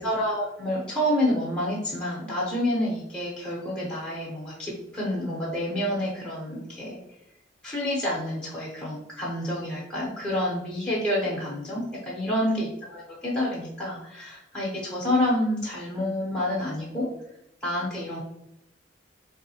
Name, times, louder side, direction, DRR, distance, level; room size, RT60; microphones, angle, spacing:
voice 1, 0.0-7.0 7.6-17.1 17.6-18.2, left 1 dB, 5° left, -5 dB, 0.8 m, -28 dB
3.6 x 2.7 x 2.8 m, 0.81 s
head